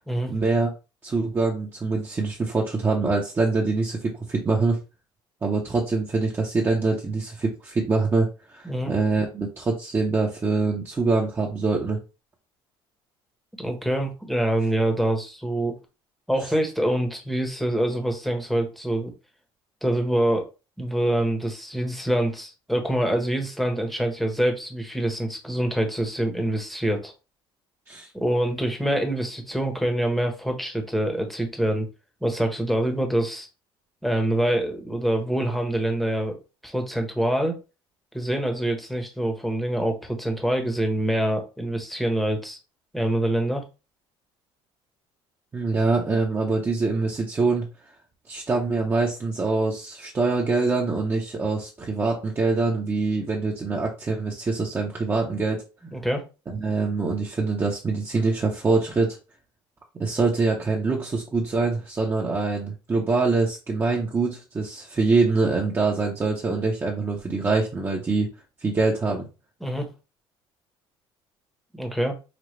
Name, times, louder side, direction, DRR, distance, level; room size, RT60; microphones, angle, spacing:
voice 1, 0.3-0.7 1.0-4.8 5.4-12.0 27.9-28.1 45.5-47.6 48.3-55.6 56.6-59.2 60.0-68.3 68.6-69.2, right 3 dB, 20° right, -2 dB, 0.9 m, -24 dB
voice 2, 13.6-15.7 16.3-19.1 19.8-20.5 20.8-27.1 28.1-31.9 32.2-33.5 34.0-37.6 38.1-42.6 42.9-43.6 55.9-56.2 69.6-69.9 71.7-72.1, right 1 dB, ahead, 4 dB, 1.0 m, -25 dB
5.0 x 2.4 x 3.2 m, 0.30 s
cardioid pair, 125°, 11 cm